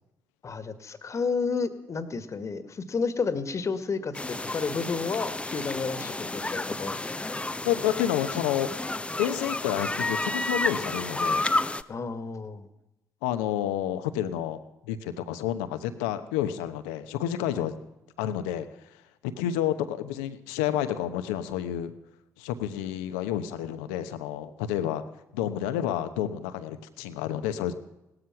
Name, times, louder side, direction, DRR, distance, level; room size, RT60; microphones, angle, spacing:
voice 1, 0.4-7.1 11.9-12.7, left 4 dB, 45° left, 11 dB, 1.7 m, -31 dB
sound 1, 4.1-11.8, left 2 dB, 15° left, 0.7 m, -31 dB
voice 2, 7.6-8.7 9.2-11.5 13.2-14.6 14.9-17.7 18.2-18.7 19.4-21.9 22.4-25.0 25.3-27.7, left 11 dB, 80° left, 10 dB, 1.0 m, -29 dB
17.5 x 13.0 x 5.9 m, 0.92 s
hypercardioid pair, 50°, 7 cm